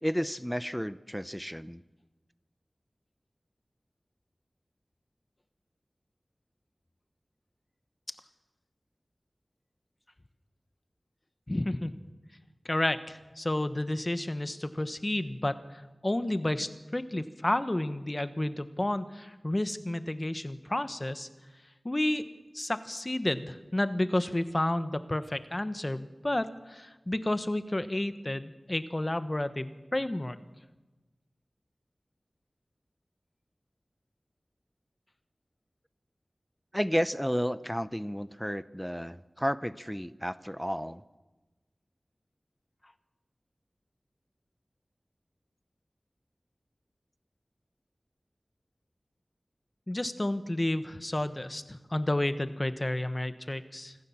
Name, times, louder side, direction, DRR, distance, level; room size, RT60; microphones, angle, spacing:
voice 1, 0.0-1.8 36.7-41.0, equal, ahead, 15 dB, 0.7 m, -32 dB
voice 2, 11.5-11.9 12.6-21.3 21.8-22.2 22.5-30.4 49.9-53.9, left 1 dB, 30° left, 11 dB, 1.3 m, -31 dB
26.0 x 14.5 x 7.3 m, 1.2 s
wide cardioid pair, 55°, 0 cm